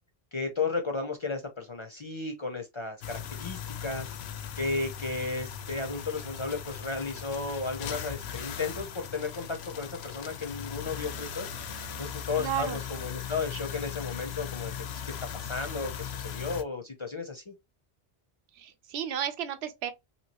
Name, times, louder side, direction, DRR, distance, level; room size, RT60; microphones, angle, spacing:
voice 1, 0.3-4.1 4.6-14.7 15.0-17.5, left 4 dB, 40° left, 0.4 m, -34 dB
sound 1, 3.0-16.6, left 8 dB, 85° left, 0.8 m, -38 dB
voice 2, 12.4-12.8 18.6-19.9, right 10 dB, 90° right, 0.9 m, -33 dB
3.0 x 2.8 x 2.8 m
omnidirectional pair, 1.0 m